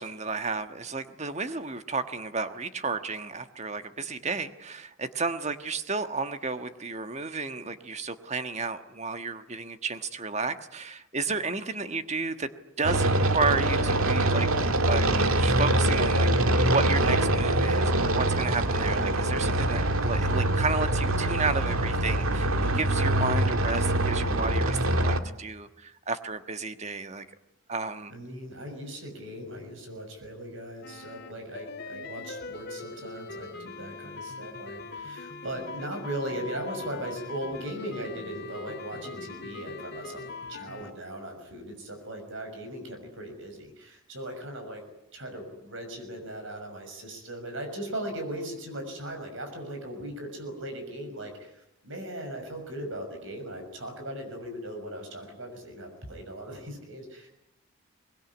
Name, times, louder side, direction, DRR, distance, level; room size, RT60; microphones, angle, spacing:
voice 1, 0.0-12.5 12.8-14.5 14.9-15.1 15.4-27.2 27.7-28.1, right 4 dB, 30° right, 9 dB, 1.4 m, -32 dB
sound 1, 12.8-25.2, right 1 dB, 85° right, 1.9 m, -24 dB
voice 2, 28.1-40.2 40.5-44.8 45.1-57.3, right 1 dB, 65° right, 5 dB, 6.2 m, -38 dB
sound 2, 30.8-40.9, left 4 dB, 50° left, 2.1 m, -41 dB
24.0 x 21.0 x 9.8 m, 0.83 s
head